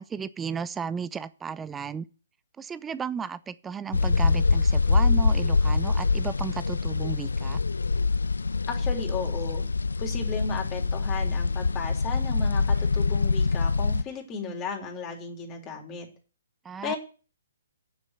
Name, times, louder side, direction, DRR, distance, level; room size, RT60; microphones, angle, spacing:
voice 1, 0.0-2.1 2.6-7.6 16.6-16.9, right 6 dB, 10° right, 15 dB, 0.6 m, -34 dB
sound 1, 3.9-14.0, left 4 dB, 80° left, 0.5 m, -24 dB
voice 2, 8.7-9.6 10.0-16.1 16.8-17.0, left 5 dB, 25° left, 3 dB, 3.4 m, -34 dB
9.4 x 7.3 x 7.8 m, 0.36 s
figure-of-eight pair, 135°, 0 cm